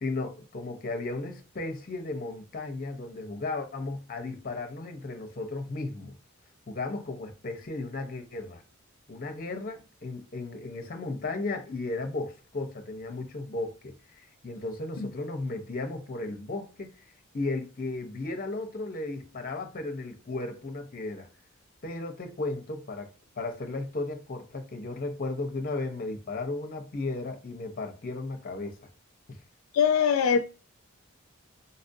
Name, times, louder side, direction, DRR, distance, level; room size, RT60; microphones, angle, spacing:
voice 1, 0.0-6.1 6.7-8.6 9.1-16.9 17.3-21.3 21.8-23.1 23.4-28.8 29.3-29.4, left 2 dB, 40° left, 0.7 m, -35 dB
voice 2, 29.7-30.4, left 7 dB, 75° left, 0.4 m, -22 dB
4.0 x 2.5 x 2.6 m
head